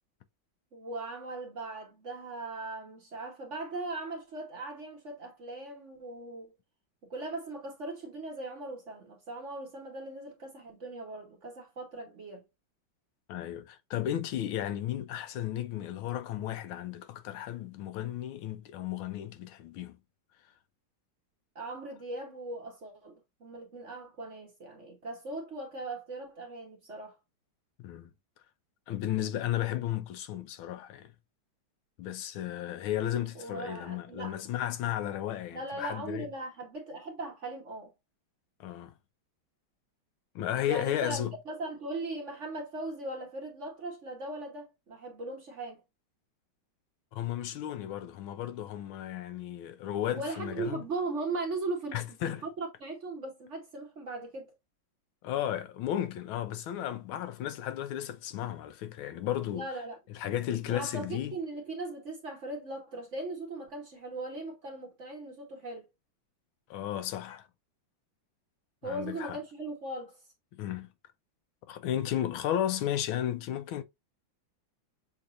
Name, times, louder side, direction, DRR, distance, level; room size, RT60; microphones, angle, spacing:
voice 1, 0.7-6.5 7.0-12.4 21.5-23.1 23.4-27.2 33.3-34.4 35.5-37.9 40.7-45.8 50.1-54.5 59.5-60.0 60.7-65.9 68.8-70.2, right 2 dB, 45° right, 1.0 m, -39 dB
voice 2, 13.3-20.0 27.8-28.1 28.9-31.1 32.0-36.3 38.6-38.9 40.3-41.3 47.1-50.8 51.9-52.4 55.2-59.7 60.1-61.3 66.7-67.5 68.8-69.4 70.5-70.9 71.7-73.8, left 11 dB, 90° left, 1.5 m, -34 dB
6.6 x 2.8 x 2.4 m
omnidirectional pair, 2.2 m